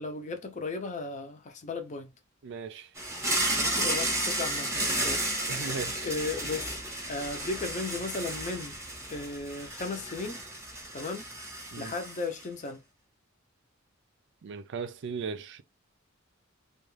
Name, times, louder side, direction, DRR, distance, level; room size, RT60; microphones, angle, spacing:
voice 1, 0.0-2.1 3.5-5.7 6.0-6.8 7.1-8.8 9.1-10.4 10.9-11.3 11.8-12.8, left 3 dB, 35° left, 0.6 m, -36 dB
voice 2, 2.4-2.9 5.5-6.1 11.7-11.9 14.4-15.6, right 5 dB, 60° right, 0.4 m, -37 dB
sound 1, 3.0-12.4, right 1 dB, 15° right, 0.8 m, -32 dB
2.4 x 2.3 x 3.1 m
head